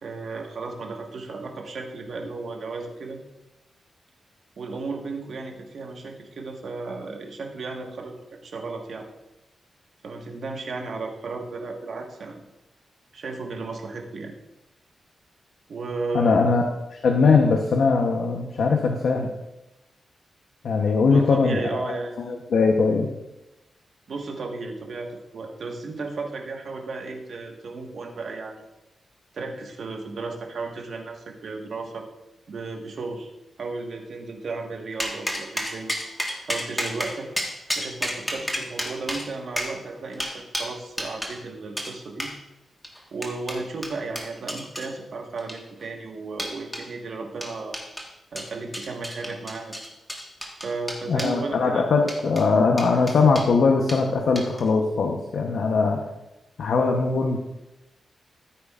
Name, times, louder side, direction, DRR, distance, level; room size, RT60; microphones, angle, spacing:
voice 1, 0.0-3.2 4.6-9.1 10.0-12.5 13.1-14.3 15.7-16.5 21.1-22.3 24.1-28.7 29.3-32.0 32.5-33.3 33.6-35.9 36.4-37.3 37.7-42.3 43.1-47.8 48.3-49.7 50.6-51.9, right 3 dB, 60° right, 2 dB, 1.4 m, -34 dB
voice 2, 16.1-16.6 17.0-19.3 20.6-21.6 22.2-23.1 51.1-56.0 56.6-57.4, left 4 dB, 70° left, 2 dB, 0.9 m, -20 dB
sound 1, 35.0-41.3 41.8-41.9 42.2-42.3 42.8-44.9 45.4-45.8 46.4-46.8 47.4-48.1 48.4-51.4 52.0-52.4 52.8-53.5 53.9-54.0 54.4-54.7, equal, 5° left, 1.5 m, -31 dB
14.0 x 8.6 x 2.5 m, 0.95 s
wide cardioid pair, 135°, 0 cm